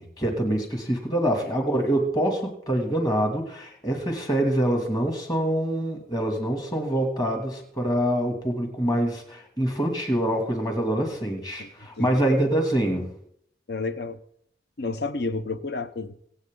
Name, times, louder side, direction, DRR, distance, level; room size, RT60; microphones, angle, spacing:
voice 1, 0.0-13.1, right 1 dB, 20° left, 2.6 m, -25 dB
voice 2, 13.7-14.2 14.8-16.1, left 3 dB, 65° left, 0.9 m, -30 dB
24.5 x 8.3 x 3.9 m
head